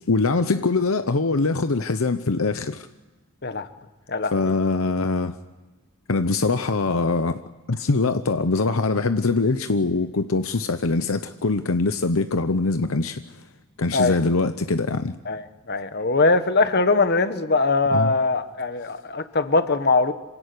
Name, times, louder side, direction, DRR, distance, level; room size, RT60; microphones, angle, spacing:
voice 1, 0.1-2.9 4.3-5.4 6.1-7.4 7.7-13.2 13.8-15.2 17.9-18.1, left 3 dB, 70° left, 0.8 m, -23 dB
voice 2, 4.1-4.5 13.9-14.2 15.2-20.1, left 3 dB, 50° left, 1.4 m, -21 dB
26.5 x 17.0 x 9.8 m
head